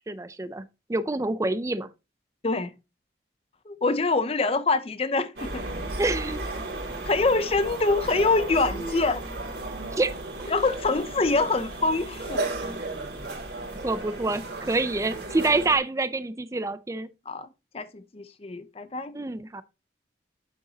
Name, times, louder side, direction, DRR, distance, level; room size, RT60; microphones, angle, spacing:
voice 1, 0.1-0.6 0.9-1.9 6.0-6.4 10.0-10.1 13.8-17.1 19.1-19.6, right 2 dB, 15° right, 0.4 m, -27 dB
voice 2, 3.7-5.7 7.0-9.2 10.5-12.5 17.3-17.5 17.7-19.1, left 3 dB, 35° left, 0.6 m, -25 dB
sound 1, 5.4-15.8, right 2 dB, 65° right, 2.6 m, -34 dB
8.4 x 6.9 x 2.8 m
head